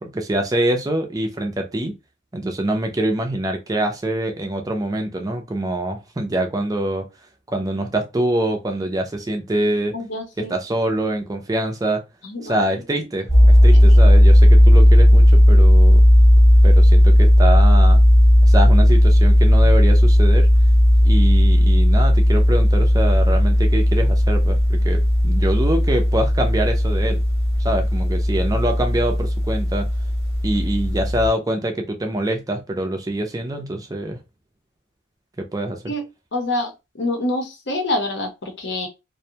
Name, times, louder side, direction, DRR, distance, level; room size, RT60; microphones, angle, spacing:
voice 1, 0.0-1.9 2.3-7.1 7.5-10.0 10.4-12.0 12.4-16.0 16.6-18.0 18.4-20.5 21.0-27.2 27.6-29.9 30.4-34.2 35.4-35.9, right 1 dB, 15° right, 0.4 m, -24 dB
voice 2, 9.9-10.5 12.2-12.6 13.9-14.0 35.9-36.0 36.3-38.9, left 2 dB, 55° left, 0.7 m, -26 dB
sound 1, 13.3-31.3, equal, 15° left, 1.0 m, -14 dB
2.5 x 2.2 x 2.8 m
head